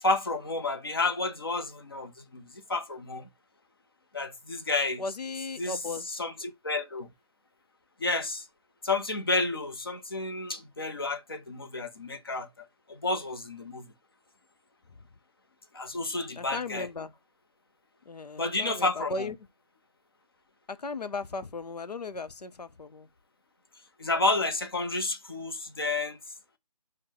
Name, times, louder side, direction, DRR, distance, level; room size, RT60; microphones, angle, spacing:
voice 1, 0.0-3.3 4.1-5.0 5.6-5.7 6.2-7.1 8.0-8.5 8.8-12.5 12.9-13.9 15.7-16.9 18.4-19.3 24.0-26.2, left 2 dB, 35° left, 0.6 m, -30 dB
voice 2, 5.0-6.2 16.4-17.1 18.1-19.3 20.7-23.1, left 3 dB, 85° left, 0.7 m, -36 dB
4.6 x 2.1 x 3.7 m
figure-of-eight pair, 170°, 20 cm